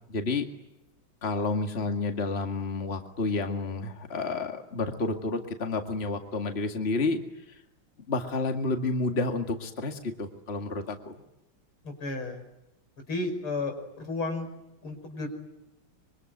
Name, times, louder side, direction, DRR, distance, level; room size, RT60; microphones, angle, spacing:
voice 1, 0.1-0.5 1.2-7.2 8.1-11.1, left 3 dB, 30° left, 5 dB, 2.2 m, -30 dB
voice 2, 11.8-12.4 13.1-14.5 14.8-15.3, left 3 dB, 90° left, 5 dB, 6.3 m, -32 dB
26.0 x 24.0 x 9.5 m, 0.92 s
omnidirectional pair, 2.3 m